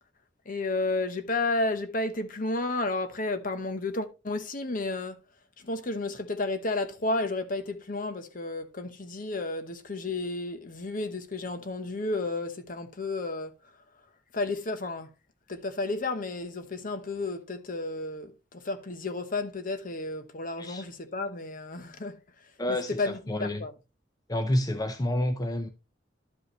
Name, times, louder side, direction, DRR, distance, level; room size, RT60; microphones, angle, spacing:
voice 1, 0.4-5.2 5.6-13.5 14.3-15.1 15.5-23.7, left 2 dB, 45° left, 1.0 m, -32 dB
voice 2, 22.6-23.0 23.3-23.6 24.3-25.7, left 1 dB, 20° left, 0.7 m, -28 dB
11.5 x 5.4 x 3.1 m
head